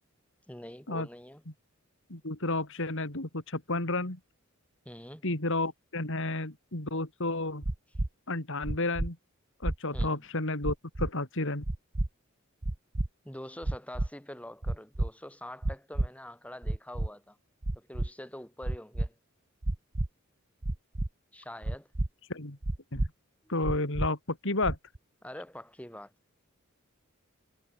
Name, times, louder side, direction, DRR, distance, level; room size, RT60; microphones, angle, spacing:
voice 1, 0.5-1.4 4.9-5.3 9.9-10.2 13.2-17.4 17.7-19.2 21.3-21.9 23.4-23.5 25.2-26.1, left 1 dB, 5° left, 5.5 m, -45 dB
voice 2, 2.1-4.2 5.2-7.6 8.3-9.2 9.6-11.7 22.3-22.6 22.9-23.0 23.5-24.8, left 2 dB, 65° left, 3.8 m, -31 dB
sound 1, 7.6-8.1 8.6-9.1 9.6-10.1 10.6-11.1 11.6-12.1 12.6-13.1 13.6-14.1 14.6-15.1 15.6-16.1 16.6-17.1 17.6-18.1 18.6-19.1 19.6-20.1 20.6-21.1 21.6-22.1 22.6-23.1 23.6-24.1 24.6-25.0, right 1 dB, 35° right, 1.0 m, -30 dB
head